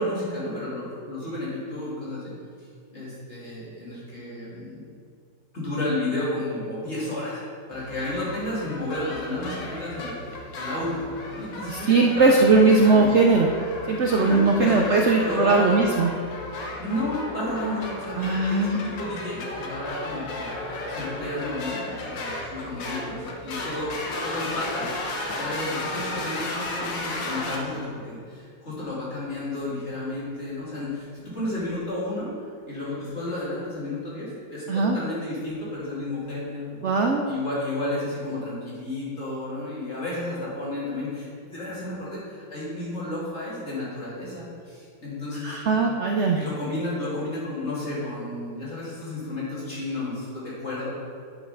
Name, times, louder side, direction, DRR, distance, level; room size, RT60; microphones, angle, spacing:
voice 1, 0.0-2.3 2.9-4.8 5.5-7.4 7.7-13.1 14.2-14.8 15.2-15.9 16.8-23.9 24.2-32.3 32.7-36.9 37.3-45.6 46.4-50.9, left 1 dB, 35° left, -7 dB, 2.8 m, -32 dB
sound 1, 7.7-27.6, left 2 dB, 75° left, 1.8 m, -34 dB
voice 2, 11.7-13.5 13.9-16.1 18.2-18.8 34.7-35.0 36.8-37.2 45.4-46.4, right 3 dB, 80° right, 2 dB, 0.6 m, -19 dB
9.7 x 5.7 x 5.4 m, 2.3 s
omnidirectional pair, 2.0 m